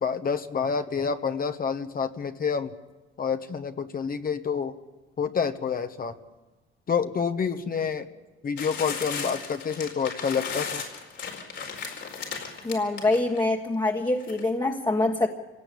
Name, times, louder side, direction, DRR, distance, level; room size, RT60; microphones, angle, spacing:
voice 1, 0.0-2.7 3.2-4.8 5.2-6.1 6.9-8.1 8.4-10.8, left 6 dB, 45° left, 8 dB, 1.3 m, -28 dB
sound 1, 8.6-13.4 14.2-14.5, left 6 dB, 70° left, 4.6 m, -35 dB
voice 2, 12.6-15.3, left 2 dB, 20° left, 1 dB, 1.6 m, -25 dB
25.5 x 17.5 x 8.5 m, 1.2 s
cardioid pair, 90°, 20 cm